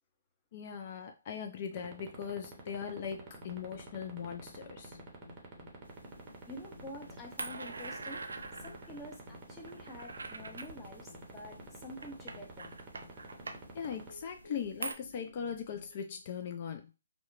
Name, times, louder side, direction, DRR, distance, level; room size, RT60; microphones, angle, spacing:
voice 1, 0.5-5.0 13.7-16.9, left 7 dB, 45° left, 0.4 m, -40 dB
sound 1, 1.8-14.1, right 6 dB, 30° right, 0.7 m, -47 dB
sound 2, 3.0-15.9, left 3 dB, 60° left, 1.2 m, -57 dB
sound 3, 5.8-14.9, right 3 dB, 85° right, 0.3 m, -46 dB
voice 2, 6.5-8.2 8.6-12.8, left 1 dB, 15° left, 0.7 m, -48 dB
2.8 x 2.1 x 2.4 m
hypercardioid pair, 145°, 0 cm